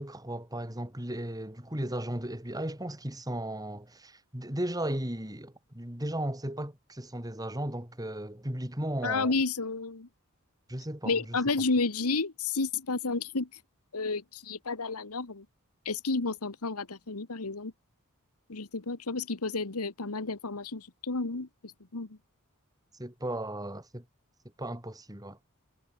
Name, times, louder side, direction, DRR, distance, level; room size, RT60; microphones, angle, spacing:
voice 1, 0.0-9.3 10.7-11.4 23.0-24.0 24.6-25.4, right 1 dB, 15° right, 3.9 m, -35 dB
voice 2, 9.0-10.1 11.0-13.5 13.9-15.4 15.8-17.7 18.5-21.5 21.9-22.2, left 3 dB, 80° left, 1.5 m, -31 dB
head